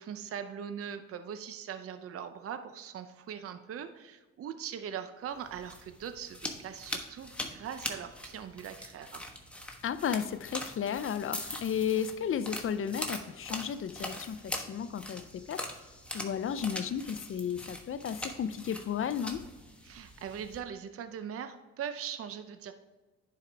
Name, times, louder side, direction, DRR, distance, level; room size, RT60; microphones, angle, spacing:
voice 1, 0.0-9.2 19.8-22.7, right 8 dB, 50° right, 9 dB, 0.6 m, -41 dB
sound 1, 5.4-20.6, left 1 dB, 5° left, 1.2 m, -42 dB
voice 2, 9.8-15.7 16.1-19.4, left 8 dB, 45° left, 13 dB, 0.5 m, -33 dB
10.5 x 4.8 x 3.4 m, 1.3 s
cardioid pair, 90°, 30 cm